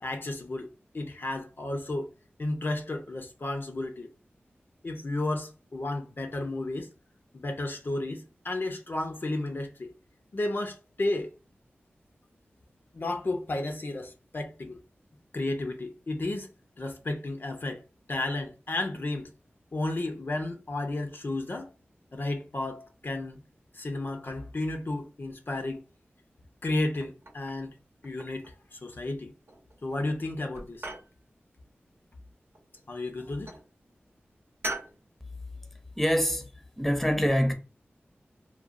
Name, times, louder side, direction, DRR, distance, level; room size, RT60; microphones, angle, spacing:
voice 1, 0.0-2.1 2.4-4.1 4.8-6.9 7.3-9.9 10.3-11.3 12.9-14.8 15.3-16.5 16.8-17.8 18.1-19.3 19.7-21.7 22.1-23.4 23.7-25.8 26.6-27.7 28.0-29.3 29.8-30.9 32.9-33.6, left 2 dB, 55° left, 0.5 m, -33 dB
sound 1, 26.9-27.7 28.0-28.7 29.5-29.9 30.2-31.1 32.5-33.1 33.5-33.7 34.6-35.0, right 1 dB, 65° right, 0.7 m, -40 dB
voice 2, 36.0-37.5, equal, 5° left, 0.6 m, -25 dB
2.9 x 2.2 x 2.4 m
cardioid pair, 45°, 4 cm